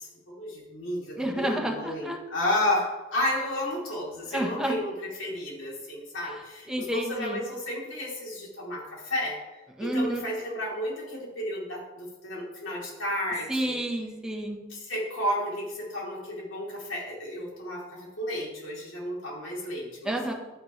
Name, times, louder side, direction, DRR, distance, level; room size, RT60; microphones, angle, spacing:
voice 1, 0.0-13.8 14.7-20.2, left 1 dB, 85° left, -4 dB, 3.5 m, -32 dB
voice 2, 1.2-2.2 4.3-4.8 6.7-7.4 9.8-10.3 13.5-14.6 20.0-20.3, right 1 dB, 5° right, 0 dB, 1.3 m, -30 dB
10.5 x 9.3 x 3.3 m, 1.2 s
head